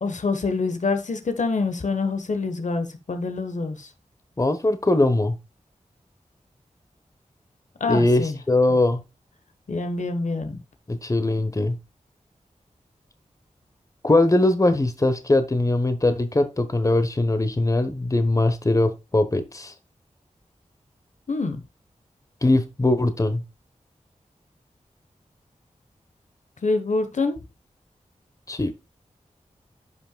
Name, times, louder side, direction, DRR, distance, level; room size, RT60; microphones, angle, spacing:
voice 1, 0.0-3.9 7.8-8.4 9.7-10.6 21.3-21.6 26.6-27.4, left 3 dB, 70° left, 1.2 m, -26 dB
voice 2, 4.4-5.4 7.9-9.0 10.9-11.8 14.0-19.7 22.4-23.4 28.5-28.7, left 2 dB, 25° left, 1.1 m, -21 dB
11.0 x 5.8 x 2.3 m
wide cardioid pair, 70°, 13 cm